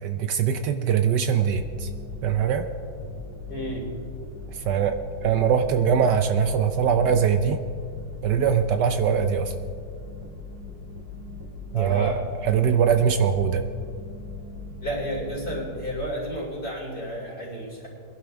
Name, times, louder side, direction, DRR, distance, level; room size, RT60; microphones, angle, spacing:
voice 1, 0.0-1.9 2.2-2.7 4.5-4.9 5.2-7.6 8.2-9.5 11.7-12.1 12.4-13.6, right 7 dB, 75° right, 8 dB, 1.2 m, -22 dB
sound 1, 1.5-16.0, left 3 dB, 15° right, 2.1 m, -39 dB
voice 2, 3.5-3.9 11.7-12.2 14.8-17.9, right 1 dB, 30° left, -3 dB, 3.3 m, -31 dB
22.0 x 11.0 x 3.4 m, 2.3 s
omnidirectional pair, 2.0 m